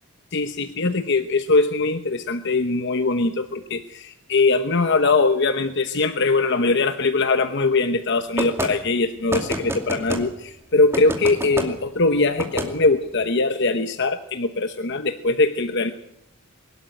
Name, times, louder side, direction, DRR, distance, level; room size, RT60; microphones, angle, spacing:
voice 1, 0.3-15.9, left 3 dB, 55° left, 9 dB, 1.0 m, -21 dB
sound 1, 8.4-8.7 9.3-10.2 10.9-11.7 12.4-12.7, right 1 dB, 10° right, 2.5 m, -27 dB
22.5 x 12.5 x 9.5 m, 0.78 s
head